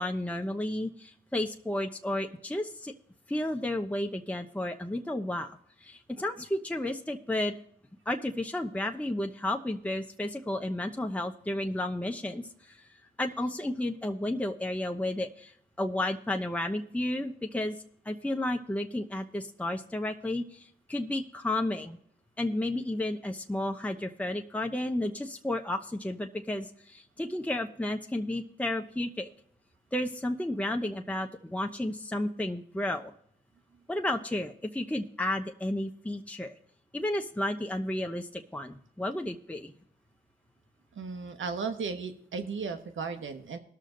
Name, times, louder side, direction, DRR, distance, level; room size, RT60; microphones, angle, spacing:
voice 1, 0.0-2.9 3.3-7.5 8.1-12.9 13.2-17.8 18.0-22.0 22.4-29.3 29.9-33.1 33.9-36.5 36.9-39.7, left 1 dB, 5° left, 4 dB, 0.9 m, -32 dB
voice 2, 40.9-43.6, right 5 dB, 75° right, 8 dB, 1.2 m, -35 dB
18.5 x 6.5 x 3.9 m, 0.67 s
cardioid pair, 50°, 20 cm